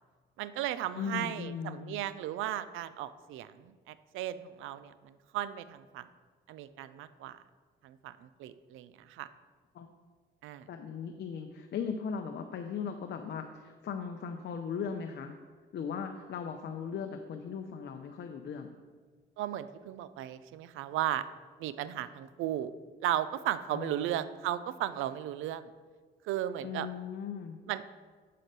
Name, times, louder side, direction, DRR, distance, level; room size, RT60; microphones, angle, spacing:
voice 1, 0.4-6.1 6.5-7.4 7.8-9.3 10.4-10.7 19.4-21.2 21.6-22.7 23.0-25.7 26.2-26.9 27.7-27.9, right 12 dB, 90° right, 14 dB, 0.5 m, -35 dB
voice 2, 0.9-2.0 9.7-9.9 10.7-15.3 15.7-18.8 23.7-24.2 26.6-27.6, left 6 dB, 60° left, 5 dB, 0.7 m, -38 dB
7.6 x 5.2 x 6.6 m, 1.5 s
cardioid pair, 90°, 20 cm